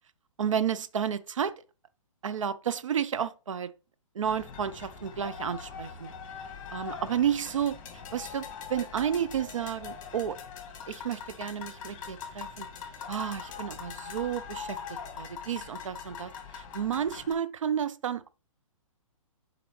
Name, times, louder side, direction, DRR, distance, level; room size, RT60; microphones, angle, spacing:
voice 1, 0.4-1.5 2.2-3.7 4.1-6.1 6.7-7.8 8.1-10.4 10.9-12.7 13.1-18.3, right 8 dB, 65° right, 0.6 m, -31 dB
sound 1, 4.2-17.3, left 6 dB, 35° left, 2.1 m, -42 dB
7.8 x 4.9 x 3.1 m
figure-of-eight pair, 130°, 18 cm